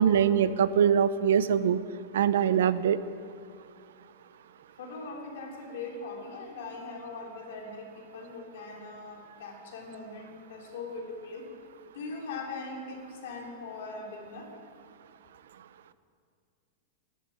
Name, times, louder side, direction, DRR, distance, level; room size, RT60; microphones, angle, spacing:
voice 1, 0.0-1.8 2.1-3.0, right 8 dB, 90° right, 15 dB, 0.6 m, -23 dB
voice 2, 4.8-11.5 11.9-14.5, left 3 dB, 65° left, 0 dB, 3.2 m, -40 dB
11.5 x 9.4 x 9.3 m, 2.3 s
supercardioid pair, 175°, 0 cm